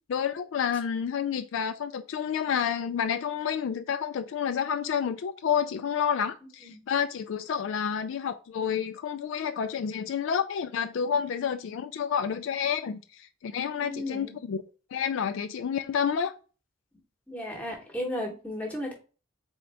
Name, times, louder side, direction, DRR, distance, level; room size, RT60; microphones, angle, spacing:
voice 1, 0.1-14.6 14.9-16.3, left 7 dB, 65° left, 0.3 m, -29 dB
voice 2, 13.9-14.3 17.3-18.9, left 1 dB, 5° left, 1.0 m, -34 dB
3.8 x 3.5 x 3.3 m
head